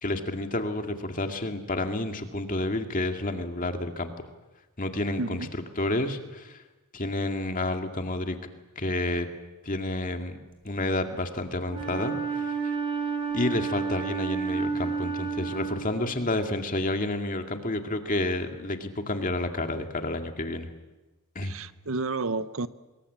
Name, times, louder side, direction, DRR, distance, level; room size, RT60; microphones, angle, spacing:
voice 1, 0.0-4.1 4.8-6.6 6.9-8.4 8.8-9.3 9.6-10.4 10.6-12.5 13.3-20.7 21.4-21.5, left 2 dB, 35° left, 2.2 m, -30 dB
voice 2, 5.2-5.5 21.4-22.7, right 3 dB, 60° right, 0.9 m, -31 dB
Wind instrument woodwind instrument, 11.7-16.4, right 5 dB, 25° right, 3.9 m, -31 dB
25.5 x 21.5 x 8.7 m
head